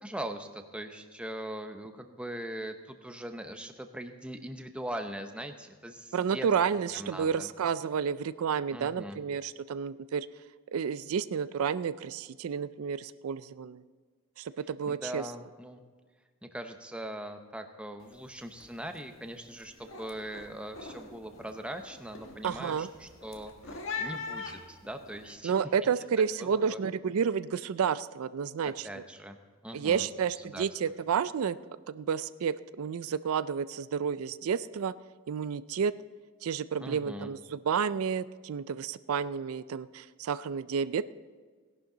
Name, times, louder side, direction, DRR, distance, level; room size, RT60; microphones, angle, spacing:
voice 1, 0.0-6.5 6.9-7.5 8.7-9.2 14.9-15.8 16.4-25.5 26.4-26.8 28.8-29.4 29.6-30.1 30.4-30.6 36.8-37.3, right 1 dB, 5° right, 6 dB, 0.7 m, -41 dB
voice 2, 6.1-10.3 10.7-13.8 14.4-15.2 22.4-22.9 25.4-29.0 29.7-31.6 31.9-34.9 35.3-35.9 36.4-41.1, right 7 dB, 80° right, 15 dB, 0.4 m, -31 dB
sound 1, 18.0-18.3 18.5-19.0 19.4-25.3, left 4 dB, 65° left, 1.6 m, -42 dB
17.5 x 11.5 x 3.9 m, 1.6 s
head